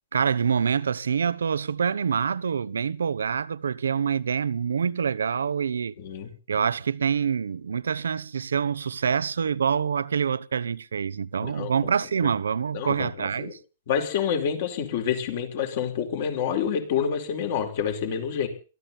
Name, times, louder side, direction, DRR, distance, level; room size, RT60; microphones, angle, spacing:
voice 1, 0.1-5.9 6.5-13.6, right 7 dB, 75° right, 0.7 m, -26 dB
voice 2, 6.0-6.3 11.4-11.9 12.2-12.3 12.7-13.5 13.9-18.5, left 8 dB, 55° left, 4.7 m, -28 dB
23.0 x 15.0 x 4.2 m
figure-of-eight pair, 110°, 0 cm